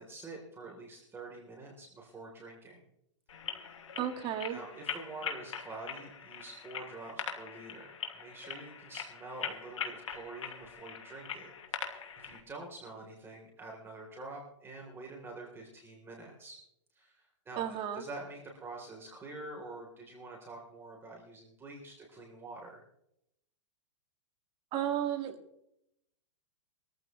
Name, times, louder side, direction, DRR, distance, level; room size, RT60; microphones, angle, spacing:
voice 1, 0.0-2.8 4.5-16.6 16.9-22.8, right 2 dB, 15° right, 0 dB, 3.1 m, -47 dB
sound 1, 3.3-12.4, left 7 dB, 90° left, 2.9 m, -42 dB
voice 2, 4.0-4.6 17.6-18.0 24.7-25.4, right 10 dB, 35° right, 7 dB, 1.9 m, -33 dB
21.5 x 14.5 x 3.0 m, 0.78 s
hypercardioid pair, 135°, 16 cm